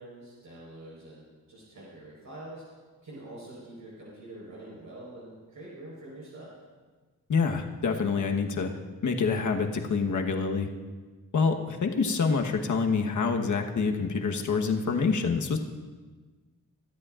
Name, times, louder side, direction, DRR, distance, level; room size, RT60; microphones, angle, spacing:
voice 1, 0.0-2.6 3.0-6.5, right 1 dB, 70° right, -6 dB, 4.6 m, -45 dB
voice 2, 7.3-8.7 9.0-10.7 11.3-15.6, left 5 dB, 60° left, 3 dB, 1.3 m, -26 dB
23.0 x 13.0 x 2.5 m, 1.4 s
wide cardioid pair, 135°, 33 cm